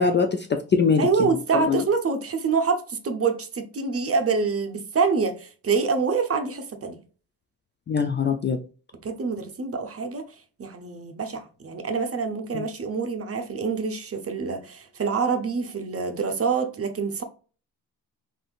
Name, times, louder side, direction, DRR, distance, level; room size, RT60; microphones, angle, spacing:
voice 1, 0.0-1.1 1.5-1.8 7.9-8.6 12.5-12.6, left 5 dB, 30° left, 0.3 m, -22 dB
voice 2, 1.0-7.0 9.0-17.2, right 5 dB, 35° right, 0.7 m, -26 dB
3.4 x 2.7 x 2.3 m
hypercardioid pair, 45°, 42 cm